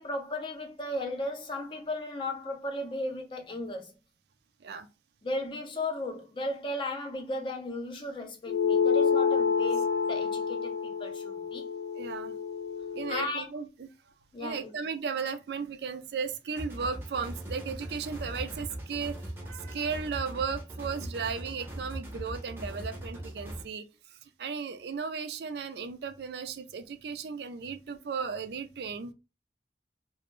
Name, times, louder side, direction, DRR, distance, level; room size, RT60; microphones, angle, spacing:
voice 1, 0.0-3.9 5.2-11.7 13.1-13.5 14.3-14.7, left 1 dB, 30° left, 0.5 m, -35 dB
sound 1, 8.5-13.3, left 6 dB, 85° left, 0.3 m, -28 dB
voice 2, 12.0-12.4 12.9-13.9 14.4-29.1, right 5 dB, 70° right, 0.4 m, -35 dB
sound 2, 16.6-23.6, right 1 dB, 15° right, 0.6 m, -40 dB
2.5 x 2.0 x 3.0 m
head